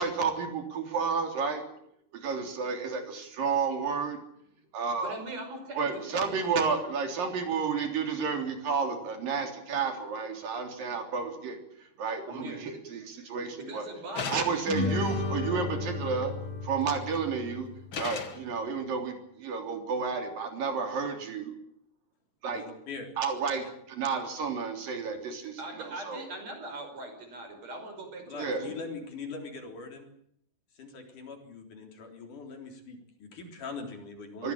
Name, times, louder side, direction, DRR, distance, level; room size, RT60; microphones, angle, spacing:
voice 1, 0.0-1.6 2.2-4.2 4.7-5.2 5.7-11.6 12.0-13.9 14.3-16.3 16.6-17.7 18.0-21.5 22.4-22.6 23.2-26.2 28.4-28.6 34.4-34.5, right 5 dB, 75° right, 5 dB, 5.2 m, -31 dB
voice 2, 5.0-6.8 12.2-12.6 13.6-15.0 25.6-28.8, right 2 dB, 50° right, 6 dB, 6.5 m, -41 dB
sound 1, 14.2-14.8 16.8-17.2 17.9-18.5, left 6 dB, 45° left, 2.0 m, -36 dB
sound 2, 14.7-18.3, left 3 dB, 25° left, 5.4 m, -34 dB
voice 3, 22.5-23.1 28.2-30.1 30.7-34.5, left 4 dB, 65° left, 4 dB, 5.2 m, -42 dB
24.0 x 16.5 x 8.9 m, 0.71 s
omnidirectional pair, 4.0 m